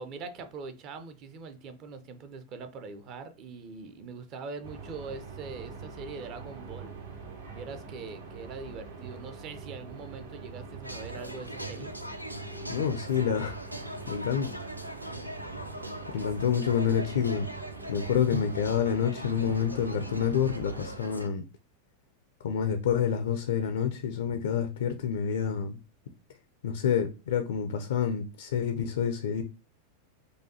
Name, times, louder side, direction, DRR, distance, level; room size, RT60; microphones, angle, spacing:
voice 1, 0.0-6.9 7.5-11.9, right 4 dB, 40° right, 0.6 m, -42 dB
sound 1, 4.6-21.0, right 5 dB, 65° right, 1.0 m, -44 dB
sound 2, 10.8-21.3, equal, 90° right, 0.4 m, -41 dB
voice 2, 12.7-13.6 14.1-14.5 16.1-17.5 17.9-21.4 22.4-25.8 26.6-29.4, left 7 dB, 60° left, 0.4 m, -28 dB
4.8 x 2.3 x 2.7 m
figure-of-eight pair, 90°, 0 cm